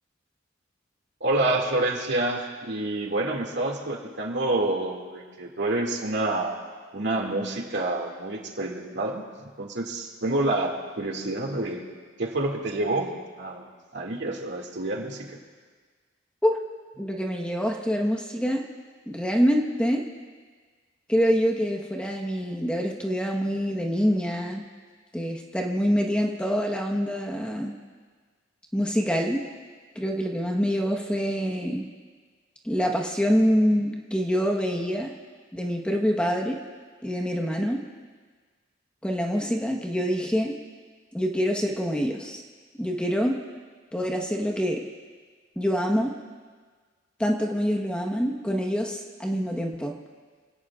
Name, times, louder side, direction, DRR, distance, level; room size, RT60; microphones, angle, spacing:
voice 1, 1.2-6.6 6.9-11.8 12.2-13.1 13.4-15.4, right 2 dB, 65° right, 1 dB, 2.2 m, -28 dB
voice 2, 17.0-18.6 19.1-20.0 21.1-24.6 25.1-27.7 28.7-29.4 29.9-31.8 32.6-35.1 35.5-36.6 37.0-37.8 39.0-40.5 41.1-42.4 42.8-43.4 43.9-44.8 45.6-46.1 47.2-49.9, equal, 5° left, 0 dB, 1.2 m, -25 dB
27.5 x 17.5 x 2.4 m, 1.5 s
head